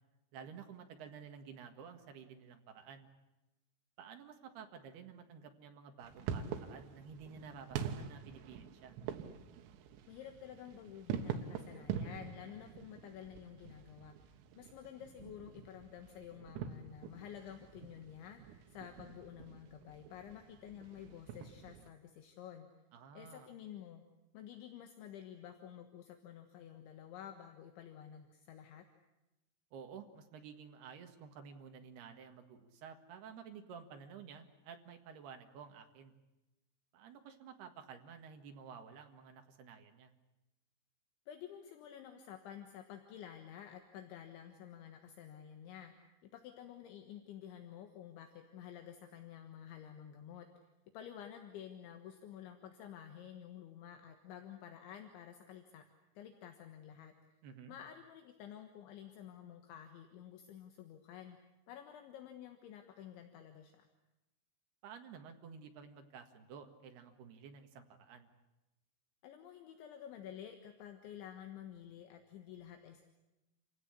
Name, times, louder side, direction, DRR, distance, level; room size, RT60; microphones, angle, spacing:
voice 1, 0.3-3.1 4.0-8.9 22.9-23.5 29.7-36.1 36.9-40.1 57.4-57.7 64.8-68.3, right 6 dB, 60° right, 6 dB, 3.4 m, -52 dB
sound 1, 6.0-21.9, right 8 dB, 90° right, 4.1 m, -45 dB
voice 2, 10.1-14.1 14.6-22.7 23.1-24.0 24.3-28.9 41.3-45.9 46.2-50.5 50.9-55.8 56.2-57.1 57.7-61.4 61.7-63.9 69.2-73.0, left 9 dB, 70° left, 6 dB, 3.7 m, -51 dB
28.5 x 17.0 x 10.0 m, 0.99 s
omnidirectional pair, 5.8 m